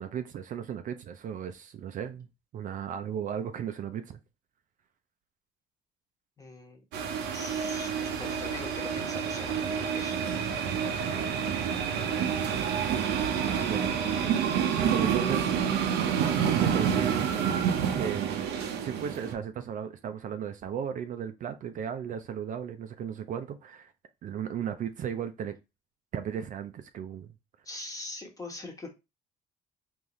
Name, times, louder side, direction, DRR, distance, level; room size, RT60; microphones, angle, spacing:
voice 1, 0.0-2.3 2.5-4.2 13.7-13.9 14.9-15.5 16.5-17.3 17.9-23.9 24.2-25.6 26.1-27.3, right 8 dB, 50° right, 0.5 m, -35 dB
voice 2, 6.4-6.8 7.3-10.2 27.6-28.9, left 2 dB, 20° left, 1.1 m, -42 dB
sound 1, 6.9-19.3, right 8 dB, 85° right, 0.7 m, -28 dB
3.8 x 2.6 x 3.1 m
cardioid pair, 110°, 17 cm